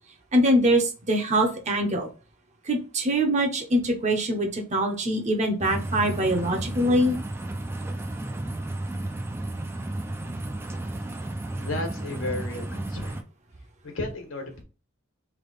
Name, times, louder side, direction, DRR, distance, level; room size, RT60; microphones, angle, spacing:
voice 1, 0.3-2.1 2.6-7.2, right 1 dB, 35° right, 3 dB, 0.8 m, -23 dB
sound 1, 5.6-13.2, right 1 dB, 10° right, 0.4 m, -33 dB
voice 2, 11.6-13.2 13.8-14.6, left 2 dB, 65° left, 3 dB, 1.3 m, -33 dB
3.4 x 2.8 x 4.0 m, 0.35 s
head